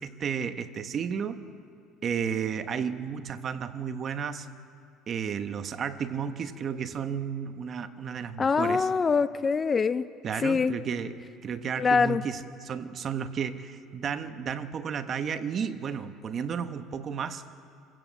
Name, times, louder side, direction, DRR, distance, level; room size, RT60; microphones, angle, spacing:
voice 1, 0.0-1.4 2.0-4.5 5.1-8.9 10.2-17.4, right 7 dB, 35° right, 9 dB, 1.0 m, -33 dB
voice 2, 8.4-10.1 10.4-10.7 11.8-12.2, left 5 dB, 20° left, 14 dB, 0.4 m, -24 dB
26.0 x 15.0 x 8.1 m, 2.4 s
cardioid pair, 145°, 0 cm